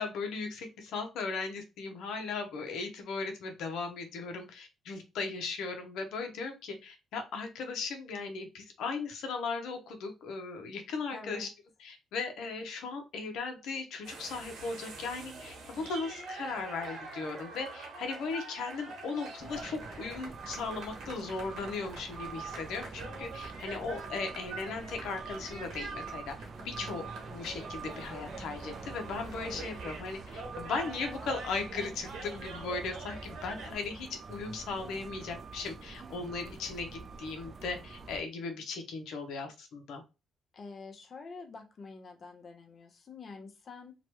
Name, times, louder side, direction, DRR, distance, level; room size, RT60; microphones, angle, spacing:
voice 1, 0.0-11.5 11.8-26.3 26.6-27.1 27.3-40.0, left 4 dB, 80° left, 5 dB, 0.7 m, -37 dB
voice 2, 11.1-11.5 26.6-27.1 40.5-43.9, left 4 dB, 45° left, 5 dB, 0.7 m, -47 dB
sound 1, 14.0-33.8, right 3 dB, 80° right, 1.2 m, -45 dB
sound 2, 19.4-38.2, right 5 dB, 40° right, 0.4 m, -45 dB
2.9 x 2.2 x 2.9 m, 0.27 s
cardioid pair, 90°, 0 cm